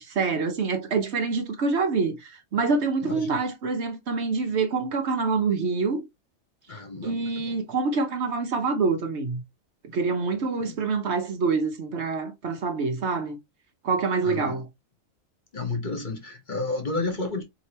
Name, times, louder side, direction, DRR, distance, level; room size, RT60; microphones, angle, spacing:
voice 1, 0.0-6.0 7.0-9.4 9.9-13.4 13.8-14.7, right 4 dB, 60° right, 1.1 m, -26 dB
voice 2, 3.0-3.4 6.7-7.6 10.6-10.8 14.2-14.6 15.5-17.4, left 3 dB, 40° left, 1.1 m, -32 dB
4.9 x 2.9 x 2.9 m
omnidirectional pair, 1.3 m